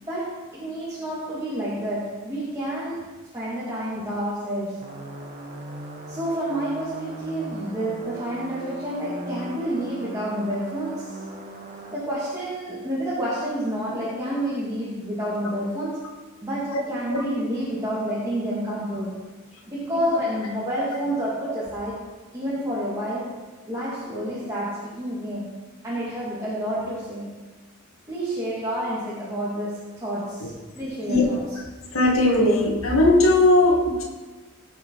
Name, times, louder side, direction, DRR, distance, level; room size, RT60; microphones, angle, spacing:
voice 1, 0.0-3.0 3.3-4.8 6.1-11.2 11.9-16.1 16.4-19.2 19.7-22.1 22.3-23.3 23.7-25.6 25.8-27.3 28.1-31.4, right 1 dB, 15° right, -8 dB, 2.5 m, -29 dB
sound 1, 4.8-11.9, right 1 dB, 35° right, 1.8 m, -39 dB
voice 2, 31.9-34.0, left 2 dB, 75° left, -1 dB, 2.1 m, -18 dB
18.0 x 6.6 x 4.9 m, 1.3 s
head